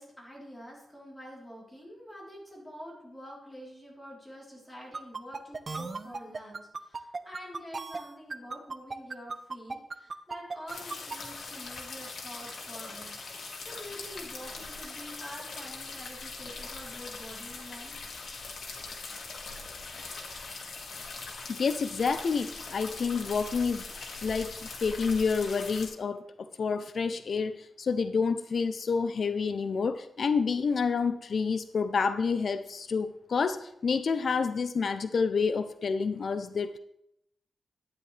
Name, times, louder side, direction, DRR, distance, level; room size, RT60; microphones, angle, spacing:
voice 1, 0.0-18.0, equal, 5° left, -4 dB, 3.4 m, -47 dB
sound 1, 4.9-11.2, right 4 dB, 35° right, 0.6 m, -36 dB
sound 2, 10.7-25.9, left 3 dB, 85° left, 1.8 m, -41 dB
voice 2, 21.5-23.8 24.2-24.6 24.8-36.8, left 5 dB, 60° left, 11 dB, 0.4 m, -29 dB
12.0 x 9.7 x 3.2 m, 0.79 s
wide cardioid pair, 135°, 0 cm